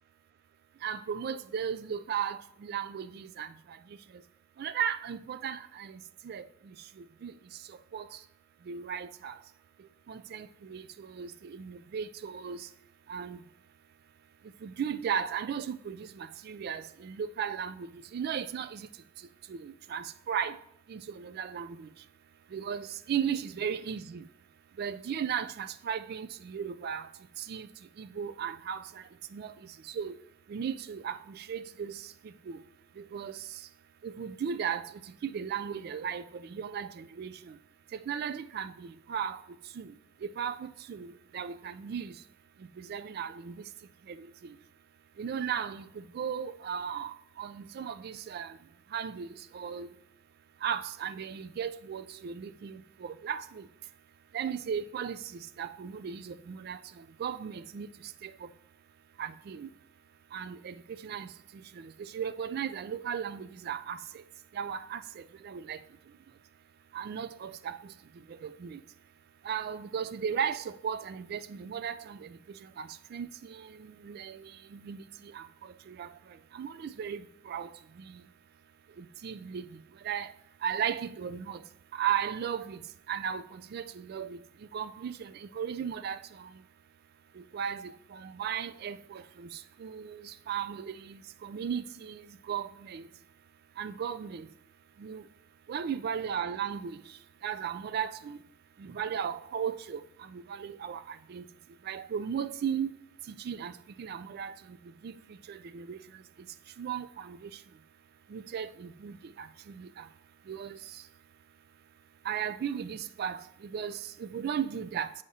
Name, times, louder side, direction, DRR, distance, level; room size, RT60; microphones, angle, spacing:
voice 1, 0.8-3.5 4.6-6.0 6.2-6.4 7.0-7.3 7.9-8.1 8.7-9.4 10.1-12.7 13.1-13.4 14.6-17.9 18.1-18.9 19.5-20.6 20.9-21.9 22.5-24.2 24.8-27.1 27.4-27.7 28.0-28.9 29.3-29.5 29.9-30.2 30.5-32.0 32.5-32.6 33.0-33.4 34.0-37.4 37.9-39.4 39.8-39.9 40.4-42.1 42.8-43.6 44.1-44.3 45.2-45.9 46.1-48.6 48.9-49.9 50.6-53.7 54.3-57.9 58.2-58.3 59.2-59.7 60.3-61.3 61.8-64.0 64.5-65.8 66.9-67.9 68.3-68.8 69.4-72.4 72.8-75.5 75.9-76.1 76.5-77.7 79.0-79.7 80.0-80.3 80.6-81.6 81.9-82.8 83.1-84.4 84.7-86.5 87.4-93.1 93.8-94.5 95.0-95.2 95.7-97.0 97.4-98.4 98.8-101.5 101.9-102.9 103.3-103.7 104.0-104.8 105.0-105.1 105.5-106.0 106.8-107.5 108.3-109.5 109.8-110.1 110.5-110.8 112.2-115.1, right 8 dB, 55° right, 0.3 m, -36 dB
8.5 x 4.8 x 2.8 m
head